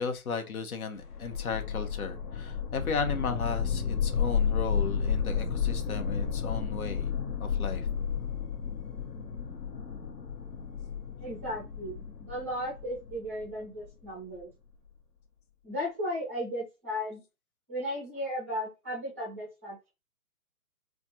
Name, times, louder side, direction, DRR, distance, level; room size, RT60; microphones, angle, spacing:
voice 1, 0.0-7.1 7.4-7.9, left 5 dB, 65° left, 1.0 m, -35 dB
sound 1, 1.0-14.1, left 7 dB, 90° left, 1.2 m, -32 dB
voice 2, 11.2-14.5 15.6-17.2 17.7-19.9, equal, 10° right, 0.5 m, -35 dB
4.3 x 2.4 x 2.8 m
hypercardioid pair, 155°, 46 cm